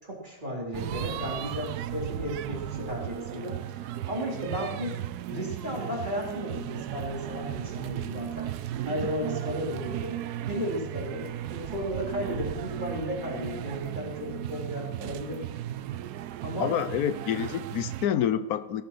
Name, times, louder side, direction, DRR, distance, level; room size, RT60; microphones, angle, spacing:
voice 1, 0.0-3.6 4.1-5.0 5.3-8.5 8.8-10.1 10.5-15.4 16.4-16.7 17.2-17.5, equal, 30° right, -3 dB, 4.1 m, -34 dB
sound 1, 0.7-18.1, right 12 dB, 90° right, 1.2 m, -36 dB
voice 2, 16.6-18.8, left 9 dB, 75° left, 13 dB, 1.2 m, -28 dB
17.5 x 8.2 x 6.1 m, 0.97 s
omnidirectional pair, 1.6 m